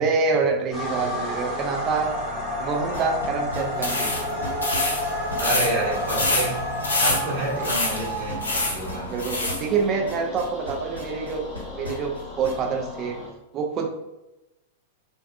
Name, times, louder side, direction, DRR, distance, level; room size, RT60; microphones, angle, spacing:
voice 1, 0.0-2.1 2.6-4.1 7.4-7.7 9.1-11.4 11.7-13.2 13.5-13.9, right 5 dB, 35° right, 2 dB, 0.4 m, -26 dB
sound 1, 0.7-13.3, left 1 dB, 10° left, 0.7 m, -31 dB
sound 2, 2.9-12.6, left 1 dB, 90° right, 0.8 m, -37 dB
sound 3, 3.7-9.6, left 2 dB, 80° left, 0.6 m, -27 dB
voice 2, 5.3-6.6 7.0-8.4 8.6-9.1, right 2 dB, 55° right, -6 dB, 1.0 m, -28 dB
2.5 x 2.1 x 2.3 m, 0.95 s
figure-of-eight pair, 100°, 0 cm